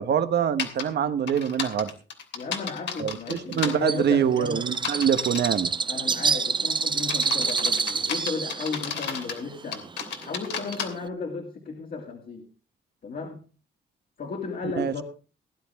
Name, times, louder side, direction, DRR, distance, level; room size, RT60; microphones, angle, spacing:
voice 1, 0.0-1.9 3.0-5.7 14.8-14.9, right 8 dB, 60° right, 11 dB, 1.2 m, -25 dB
sound 1, 0.6-0.8 1.3-3.8 4.7-5.6 6.1-6.4 7.0-9.4 9.7-10.9, left 6 dB, 70° left, 3.0 m, -33 dB
voice 2, 2.3-4.7 5.9-9.9 10.2-12.4 13.0-13.4 14.2-15.0, left 4 dB, 50° left, 1 dB, 2.6 m, -34 dB
Bird, 3.8-11.1, right 5 dB, 25° right, 0.6 m, -28 dB
18.0 x 11.0 x 3.5 m, 0.35 s
cardioid pair, 135°, 19 cm